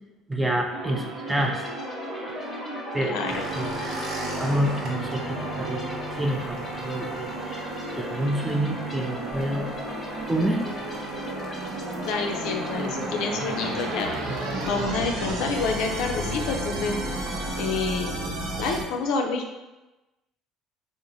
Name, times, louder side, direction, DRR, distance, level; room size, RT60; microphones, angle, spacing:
voice 1, 0.3-1.7 2.1-2.2 2.9-3.9 4.4-7.7 7.9-9.7 10.3-11.0, right 1 dB, 10° right, 2 dB, 0.4 m, -28 dB
sound 1, 0.7-18.8, right 2 dB, 90° right, 0.6 m, -34 dB
sound 2, 1.3-14.8, left 2 dB, 30° left, 0.7 m, -40 dB
voice 2, 3.0-3.5 12.0-14.1 14.6-17.0 17.6-19.4, left 4 dB, 75° left, 3 dB, 0.4 m, -28 dB
sound 3, 3.3-17.5, right 1 dB, 50° right, 0.8 m, -38 dB
2.7 x 2.1 x 3.9 m, 1.0 s
supercardioid pair, 100°, 0 cm